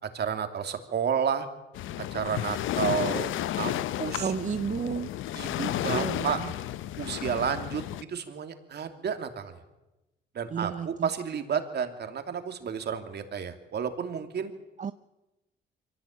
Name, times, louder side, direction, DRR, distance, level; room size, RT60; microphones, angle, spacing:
voice 1, 0.0-1.5 2.0-4.3 5.3-6.4 7.0-7.8 8.1-9.6 10.3-14.5, right 7 dB, 55° right, 7 dB, 2.8 m, -31 dB
Waves surf, 1.7-8.0, left 13 dB, 85° left, 0.7 m, -32 dB
voice 2, 4.2-5.1 5.9-6.5 10.5-11.1 14.8-14.9, right 7 dB, 40° right, 12 dB, 0.7 m, -32 dB
24.0 x 17.0 x 8.8 m, 1.0 s
cardioid pair, 90°, 20 cm